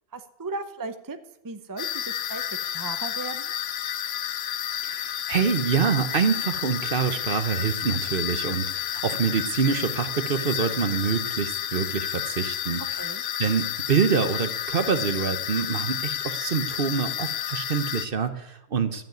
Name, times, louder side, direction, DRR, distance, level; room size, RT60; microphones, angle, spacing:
voice 1, 0.1-1.2 1.4-3.5 13.0-13.2, right 3 dB, 20° right, 9 dB, 0.6 m, -36 dB
sound 1, 1.8-18.1, left 11 dB, 60° left, 0.8 m, -31 dB
voice 2, 4.8-12.8 13.4-19.1, right 6 dB, 50° right, 11 dB, 0.9 m, -26 dB
13.5 x 7.5 x 9.3 m, 0.90 s
omnidirectional pair, 1.3 m